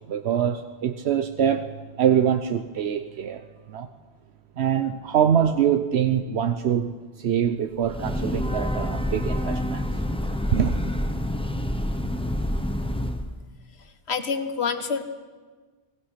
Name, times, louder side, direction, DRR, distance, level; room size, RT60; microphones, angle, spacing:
voice 1, 0.1-1.7 2.0-3.9 4.6-10.0 10.5-10.8, right 9 dB, 85° right, 1.1 m, -24 dB
Breathing / Train, 7.8-13.3, equal, 5° left, 1.0 m, -27 dB
voice 2, 14.1-15.0, left 5 dB, 75° left, 1.6 m, -27 dB
26.5 x 19.5 x 5.8 m
omnidirectional pair, 1.1 m